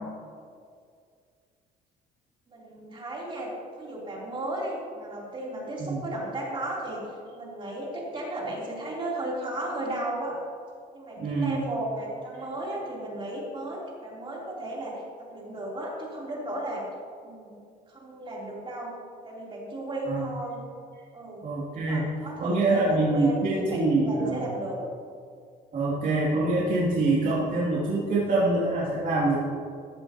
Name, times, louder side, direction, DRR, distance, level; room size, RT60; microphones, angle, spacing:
voice 1, 2.5-7.1 7.3-10.4 10.9-16.8 17.2-20.7 21.1-21.5 21.7-24.8, right 1 dB, 30° right, -4 dB, 3.4 m, -35 dB
voice 2, 11.2-11.6 20.1-20.3 21.4-22.1 22.4-24.4 25.7-29.4, right 2 dB, 50° right, -7 dB, 2.7 m, -25 dB
15.0 x 11.0 x 2.9 m, 2.2 s
cardioid pair, 110°, 17 cm